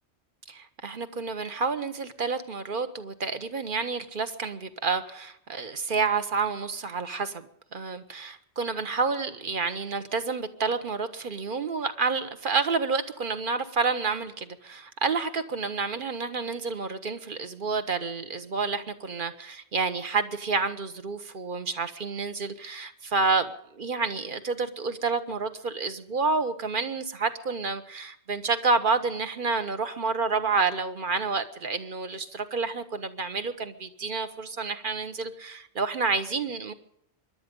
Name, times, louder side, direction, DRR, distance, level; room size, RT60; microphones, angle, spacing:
voice 1, 0.5-7.5 7.7-36.7, right 4 dB, 50° right, 1.2 m, -29 dB
24.5 x 11.0 x 5.3 m
omnidirectional pair, 1.1 m